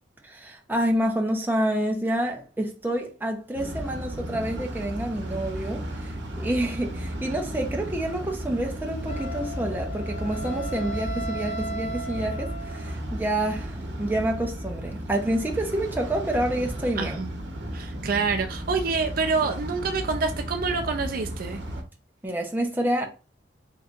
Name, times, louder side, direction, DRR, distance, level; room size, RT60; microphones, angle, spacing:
voice 1, 0.2-17.2 22.2-23.1, right 1 dB, 10° right, 0.7 m, -28 dB
sound 1, 3.5-21.8, equal, 70° right, 0.9 m, -34 dB
Wind instrument woodwind instrument, 9.1-13.0, right 1 dB, 35° left, 0.6 m, -36 dB
voice 2, 17.0-17.3 17.7-21.6, right 4 dB, 50° right, 0.4 m, -27 dB
4.2 x 3.8 x 2.4 m
head